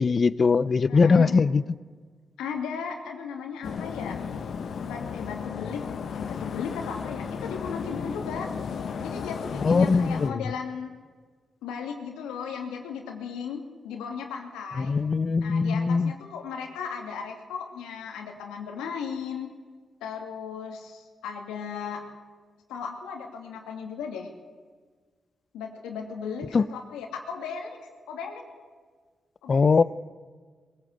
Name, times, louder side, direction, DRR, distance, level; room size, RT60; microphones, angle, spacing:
voice 1, 0.0-1.6 9.6-10.3 14.8-16.1 26.5-26.6 29.5-29.8, left 4 dB, 50° left, 0.7 m, -21 dB
voice 2, 0.9-1.3 2.4-4.2 4.8-5.9 6.1-8.5 9.0-10.9 11.6-15.0 15.4-19.5 20.0-22.0 22.7-24.3 25.5-27.8 28.1-28.4 29.4-29.7, left 6 dB, 90° left, 2.4 m, -36 dB
sound 1, 3.6-10.3, left 6 dB, 70° left, 1.2 m, -34 dB
21.5 x 15.5 x 8.1 m
supercardioid pair, 45°, 0 cm